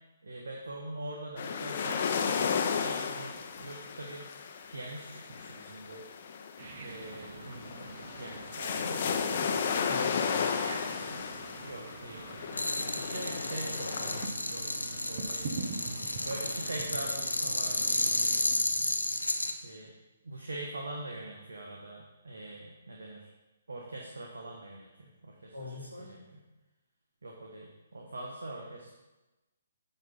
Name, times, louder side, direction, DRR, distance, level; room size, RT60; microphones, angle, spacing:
voice 1, 0.2-4.3 4.7-6.0 6.8-9.9 11.1-11.3 11.6-12.4 12.9-14.6 15.0-19.0 19.6-19.9 20.2-23.3 23.7-25.5 26.1-26.2 27.2-28.9, right 2 dB, 70° right, -1 dB, 1.3 m, -43 dB
sound 1, 1.4-14.3, left 6 dB, 45° left, 0.7 m, -34 dB
sound 2, 6.6-18.6, right 3 dB, 45° right, 1.1 m, -44 dB
voice 2, 8.8-10.5 25.5-26.2, left 2 dB, 90° right, -3 dB, 2.6 m, -45 dB
sound 3, 12.5-19.5, left 1 dB, 85° left, 0.8 m, -32 dB
8.9 x 4.3 x 5.6 m, 1.1 s
figure-of-eight pair, 130°, 0 cm